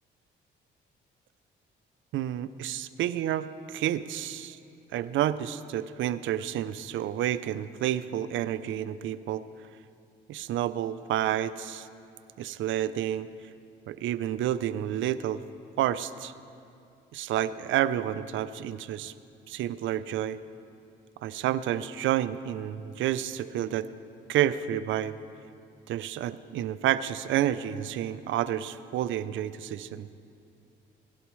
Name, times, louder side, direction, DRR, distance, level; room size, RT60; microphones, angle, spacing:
voice 1, 2.1-4.6 4.9-9.4 10.3-11.9 12.4-13.3 13.9-15.4 15.8-16.3 17.1-19.1 19.5-20.4 21.2-23.9 24.3-25.2 25.9-30.1, right 11 dB, 75° right, 14 dB, 0.5 m, -29 dB
17.5 x 11.5 x 3.1 m, 2.6 s
cardioid pair, 90°, 20 cm